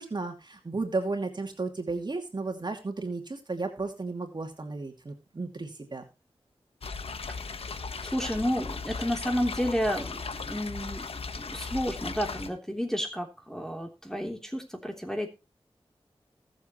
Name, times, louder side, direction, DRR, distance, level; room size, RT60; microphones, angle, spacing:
voice 1, 0.0-6.1, right 3 dB, 50° right, 3 dB, 2.6 m, -34 dB
sound 1, 6.8-12.5, left 4 dB, 80° left, 1.3 m, -37 dB
voice 2, 8.0-11.1 11.3-15.3, equal, 5° left, 3 dB, 3.4 m, -31 dB
19.5 x 7.6 x 3.1 m, 0.26 s
cardioid pair, 55°, 10 cm